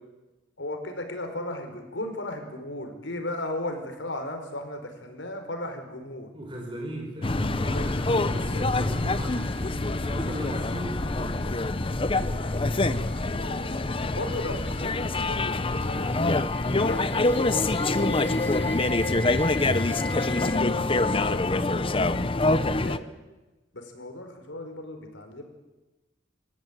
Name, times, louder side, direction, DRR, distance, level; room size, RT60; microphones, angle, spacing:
voice 1, 0.6-6.3 7.7-7.9 12.4-16.4 16.7-22.2 22.6-23.1 23.7-25.4, left 1 dB, 85° left, 5 dB, 4.6 m, -37 dB
voice 2, 6.3-11.7, right 1 dB, 30° right, 0 dB, 4.6 m, -38 dB
sound 1, 7.2-23.0, left 2 dB, 30° left, 0.9 m, -25 dB
sound 2, 7.8-20.6, left 2 dB, 10° left, 2.4 m, -43 dB
26.5 x 14.5 x 9.4 m, 1.1 s
head